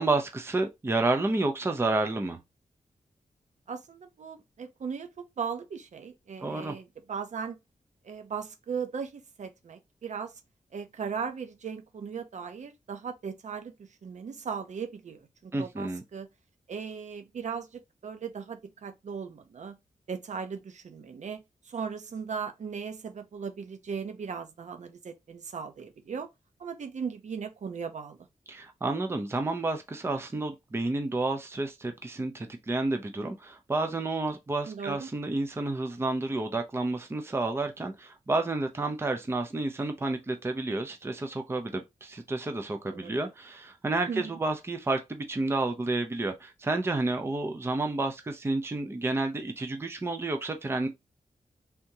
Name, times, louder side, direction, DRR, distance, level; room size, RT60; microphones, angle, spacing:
voice 1, 0.0-2.4 6.4-6.8 15.5-16.0 28.5-50.9, right 2 dB, 20° right, 0.5 m, -30 dB
voice 2, 3.7-7.6 8.0-10.3 10.7-16.3 16.7-19.8 20.1-26.3 26.6-28.2 34.7-35.1 42.9-43.1 44.1-44.4, right 6 dB, 65° right, 0.7 m, -38 dB
3.5 x 2.8 x 2.7 m
wide cardioid pair, 140°, 13 cm